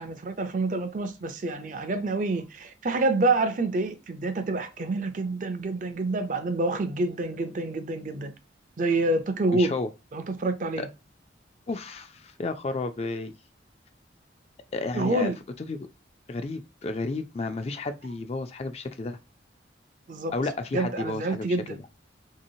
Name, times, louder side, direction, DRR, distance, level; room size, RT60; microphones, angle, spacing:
voice 1, 0.0-8.3 8.8-9.7 10.1-10.9 14.9-15.4 20.1-20.3 20.7-21.8, right 2 dB, 45° right, 0.4 m, -27 dB
voice 2, 9.5-9.9 10.8-10.9 11.7-13.3 14.7-15.3 15.6-15.9 16.3-19.2 20.3-21.6, left 3 dB, 35° left, 0.3 m, -32 dB
3.3 x 2.8 x 2.7 m
head